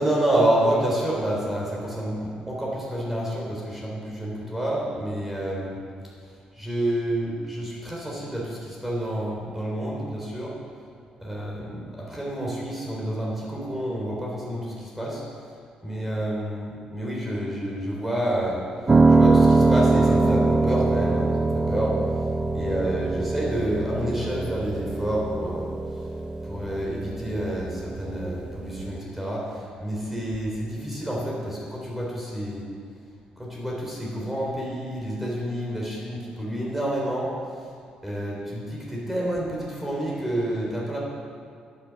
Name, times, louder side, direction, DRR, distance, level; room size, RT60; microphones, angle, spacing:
voice 1, 0.0-5.8 6.5-10.5 11.2-15.2 15.8-18.6 19.1-21.9 22.5-25.7 26.4-32.6 33.4-37.3 38.0-41.0, right 1 dB, 10° right, -4 dB, 3.3 m, -28 dB
Piano, 18.9-29.0, right 3 dB, 25° right, 0.6 m, -23 dB
9.7 x 8.2 x 6.8 m, 2.3 s
cardioid pair, 85°, 3 cm